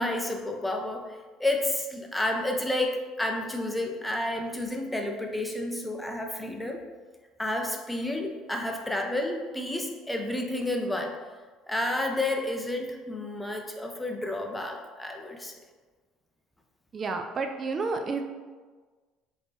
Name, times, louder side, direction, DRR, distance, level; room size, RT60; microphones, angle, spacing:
voice 1, 0.0-6.8 7.4-11.2 11.7-15.6, left 1 dB, 10° left, 2 dB, 0.6 m, -30 dB
voice 2, 16.9-18.2, right 4 dB, 35° right, 5 dB, 0.4 m, -30 dB
3.5 x 2.9 x 4.2 m, 1.4 s
hypercardioid pair, 60°, 0 cm